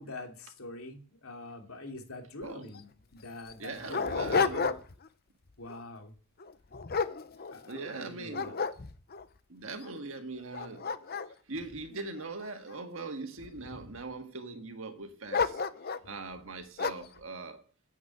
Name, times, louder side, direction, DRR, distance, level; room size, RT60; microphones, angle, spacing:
voice 1, 0.0-4.8 5.6-6.1 7.5-8.5, left 2 dB, 90° left, 2.7 m, -44 dB
Dog, 2.4-2.5 2.7-2.8 3.4-5.1 5.5-5.8 6.4-7.9 8.3-9.2 9.8-9.9 10.4-12.7 13.4-14.0 15.3-16.1 16.8-17.2, left 5 dB, 45° left, 0.7 m, -32 dB
voice 2, 3.6-4.7 7.7-8.7 9.5-10.9 11.5-15.6 16.1-17.6, right 3 dB, 65° right, 1.7 m, -41 dB
9.2 x 8.5 x 9.1 m
head